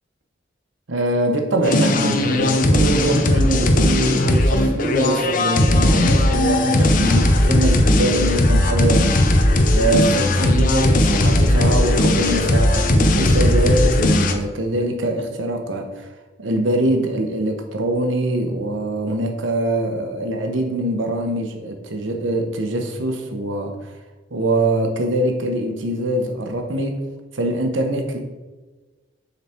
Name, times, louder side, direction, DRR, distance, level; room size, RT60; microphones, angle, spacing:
voice 1, 0.9-9.2 9.7-15.9 16.4-23.8 24.3-27.0 27.3-28.2, right 1 dB, 85° right, 0.9 m, -23 dB
sound 1, 1.6-14.3, left 1 dB, 45° left, 0.6 m, -17 dB
6.8 x 4.0 x 4.4 m
head